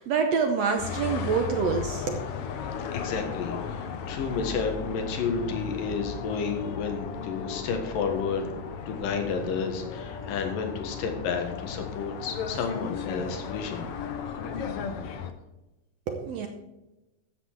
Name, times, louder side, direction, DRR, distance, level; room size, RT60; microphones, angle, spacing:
voice 1, 0.0-2.2 16.1-16.5, right 5 dB, 65° right, 4 dB, 1.8 m, -26 dB
sound 1, 0.8-15.3, left 6 dB, 65° left, 1.5 m, -35 dB
voice 2, 2.9-8.4 8.9-13.8, left 5 dB, 80° left, 4 dB, 3.2 m, -31 dB
13.5 x 7.8 x 4.7 m, 0.99 s
omnidirectional pair, 3.8 m